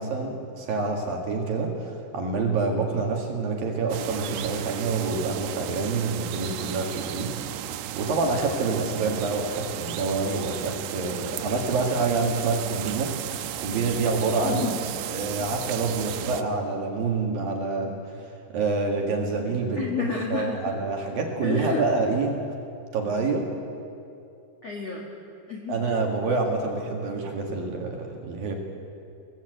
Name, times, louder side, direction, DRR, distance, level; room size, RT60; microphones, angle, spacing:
voice 1, 0.0-7.4 8.0-13.1 13.6-14.6 15.1-22.4 22.9-23.5 25.7-28.5, right 3 dB, 55° right, 2 dB, 3.2 m, -27 dB
sound 1, 3.9-16.4, right 11 dB, 75° right, 2.6 m, -34 dB
voice 2, 14.4-14.8 15.4-15.5 19.8-20.7 21.4-21.9 24.6-25.1 25.5-25.8, left 6 dB, 55° left, -2 dB, 1.9 m, -30 dB
24.0 x 19.0 x 7.9 m, 2.6 s
omnidirectional pair, 5.5 m